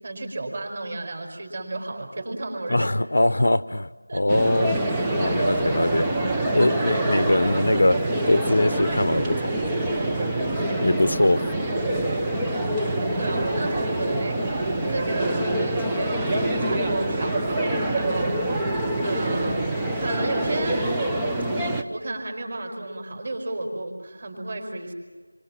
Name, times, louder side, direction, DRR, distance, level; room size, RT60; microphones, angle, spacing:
voice 1, 0.0-2.9 4.1-4.2 13.2-14.5 14.9-18.7 19.0-20.8 21.9-24.9, right 2 dB, 30° right, 4 dB, 5.0 m, -33 dB
voice 2, 2.7-4.8 5.2-8.0 8.3-9.5 10.8-11.4, left 1 dB, 60° left, 15 dB, 0.9 m, -22 dB
sound 1, 4.3-21.8, right 1 dB, 5° right, 0.8 m, -25 dB
28.5 x 25.0 x 7.4 m, 1.4 s
figure-of-eight pair, 175°, 0 cm